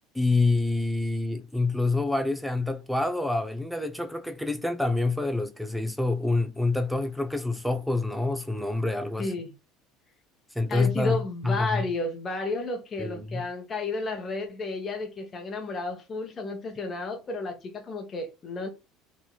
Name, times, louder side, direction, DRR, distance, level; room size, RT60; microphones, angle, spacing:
voice 1, 0.1-9.3 10.5-11.8 13.0-13.4, left 2 dB, ahead, 0.5 m, -27 dB
voice 2, 9.2-9.5 10.7-18.7, left 3 dB, 35° left, 1.0 m, -32 dB
3.1 x 2.6 x 2.2 m
hypercardioid pair, 80°, 0 cm